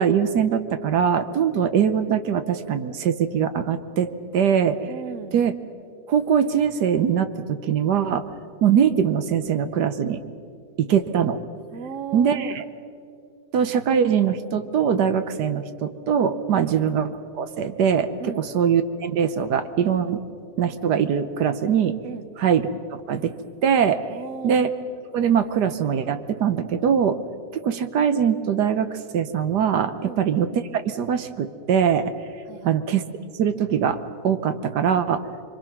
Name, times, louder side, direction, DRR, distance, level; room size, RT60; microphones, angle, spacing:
voice 1, 0.0-4.9 5.3-5.5 6.1-8.3 8.6-10.2 10.8-11.4 12.1-12.6 13.5-17.1 17.4-20.2 20.6-22.0 22.4-22.7 23.1-23.4 23.6-24.0 24.4-24.7 25.1-27.2 27.5-32.0 32.6-33.0 33.4-35.3, right 8 dB, 70° right, 10 dB, 1.4 m, -22 dB
voice 2, 4.8-5.4 11.7-12.6 16.5-16.7 18.2-18.4 22.0-22.3 24.1-24.6 30.0-30.2 32.5-32.8, right 6 dB, 55° right, 12 dB, 1.0 m, -35 dB
26.5 x 23.5 x 6.0 m, 2.4 s
omnidirectional pair, 1.9 m